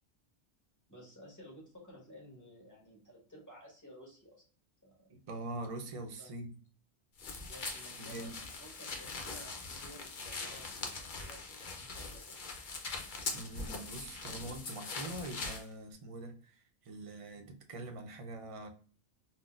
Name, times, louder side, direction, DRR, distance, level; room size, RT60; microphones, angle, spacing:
voice 1, 0.9-4.4 4.8-5.1 6.2-6.3 7.3-12.4, equal, 15° left, -3 dB, 1.2 m, -55 dB
voice 2, 5.1-6.5 7.4-7.5 8.0-8.4 13.3-18.7, right 2 dB, 45° right, 3 dB, 0.4 m, -44 dB
sound 1, 7.2-15.6, left 3 dB, 50° left, 0.7 m, -42 dB
3.8 x 2.1 x 2.3 m, 0.40 s
omnidirectional pair, 1.1 m